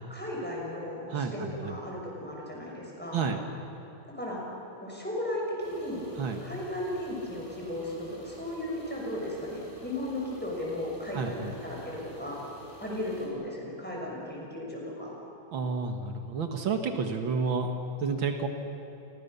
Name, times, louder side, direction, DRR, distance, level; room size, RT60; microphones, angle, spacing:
voice 1, 0.1-3.2 4.1-4.4 4.7-6.0 6.4-12.4 12.8-15.2, left 1 dB, 5° left, -3 dB, 6.6 m, -35 dB
sound 1, 5.6-13.3, right 1 dB, 30° left, 7.8 m, -49 dB
voice 2, 11.1-11.5 15.5-17.7 18.0-18.5, right 5 dB, 75° right, 5 dB, 2.3 m, -30 dB
29.5 x 24.0 x 6.9 m, 2.9 s
omnidirectional pair, 2.1 m